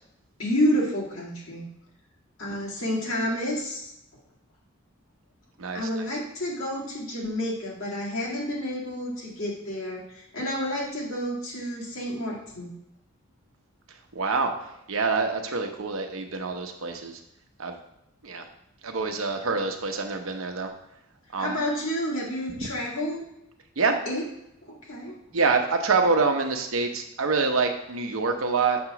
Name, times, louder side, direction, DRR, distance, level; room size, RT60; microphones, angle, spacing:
voice 1, 0.4-1.7 2.4-3.9 5.7-12.7 21.4-23.3 24.1-24.2 24.6-25.2, equal, 75° left, -4 dB, 2.1 m, -29 dB
voice 2, 5.6-5.9 14.1-14.5 14.9-17.2 17.6-17.8 18.2-18.5 18.8-20.7 21.3-21.6 23.8-24.0 25.3-28.8, right 4 dB, 75° right, 4 dB, 0.8 m, -26 dB
7.2 x 3.0 x 5.8 m, 0.84 s
head